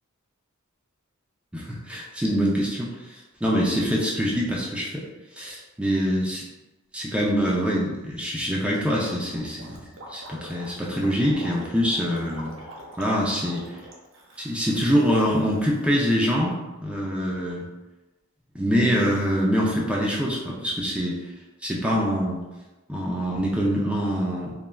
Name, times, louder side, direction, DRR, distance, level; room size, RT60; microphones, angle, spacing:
voice 1, 1.5-5.0 5.3-6.4 6.9-9.8 10.1-12.5 13.0-13.8 14.4-17.7 18.5-21.2 21.6-22.4 22.9-24.6, equal, 5° right, -4 dB, 0.4 m, -24 dB
Gurgling, 9.0-15.9, equal, 60° right, 0.6 m, -44 dB
3.1 x 2.4 x 2.2 m, 1.1 s
head